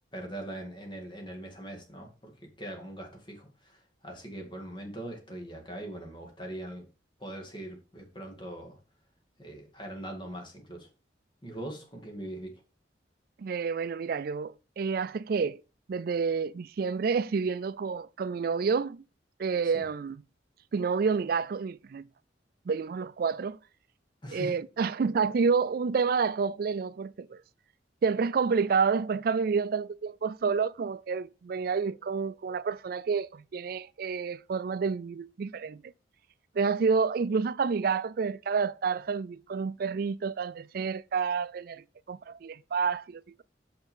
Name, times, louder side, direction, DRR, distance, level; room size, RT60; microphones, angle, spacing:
voice 1, 0.1-6.8 7.2-8.8 9.4-10.9 11.4-12.5 19.7-19.9 24.2-24.6, right 1 dB, 25° left, 2.2 m, -41 dB
voice 2, 13.4-15.6 15.9-19.0 19.4-20.2 20.7-22.0 22.7-23.6 24.3-27.4 28.0-35.8 36.6-43.4, right 5 dB, 55° right, 0.4 m, -29 dB
6.6 x 5.8 x 5.4 m
head